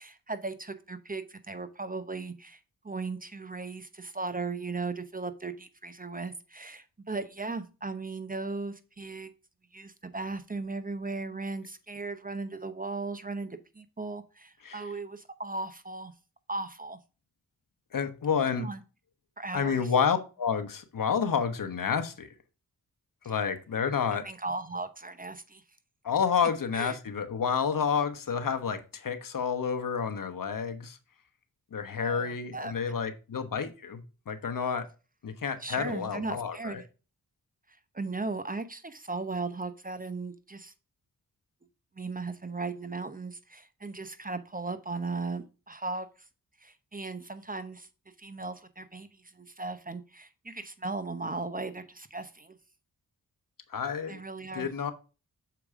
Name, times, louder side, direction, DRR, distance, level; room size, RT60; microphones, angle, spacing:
voice 1, 0.0-2.6 2.8-9.3 9.7-16.1 16.5-17.0 18.6-18.8 19.4-19.9 23.2-23.3 24.2-25.6 26.7-26.9 32.0-32.9 35.6-36.9 37.9-40.7 42.0-46.1 46.6-47.9 48.2-49.1 49.3-52.6 54.1-54.7, right 3 dB, 25° right, 0.8 m, -37 dB
voice 2, 17.9-18.7 19.5-22.3 23.2-24.2 26.0-31.0 31.7-34.0 34.3-34.8 35.2-36.8 53.7-54.2 54.5-54.9, left 6 dB, 60° left, 1.0 m, -29 dB
6.9 x 4.6 x 3.6 m
cardioid pair, 55°, 37 cm